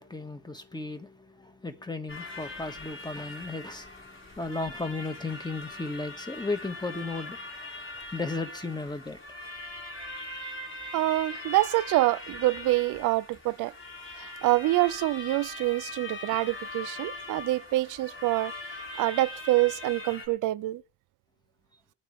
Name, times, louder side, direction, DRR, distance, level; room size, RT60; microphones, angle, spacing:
voice 1, 0.0-7.4 8.1-9.2, left 3 dB, 15° left, 2.0 m, -35 dB
sound 1, 2.1-20.3, left 2 dB, 45° left, 5.4 m, -41 dB
voice 2, 10.9-13.7 14.2-18.5 18.9-20.8, right 18 dB, 90° right, 0.6 m, -26 dB
25.0 x 9.4 x 3.6 m
cardioid pair, 90°, 30 cm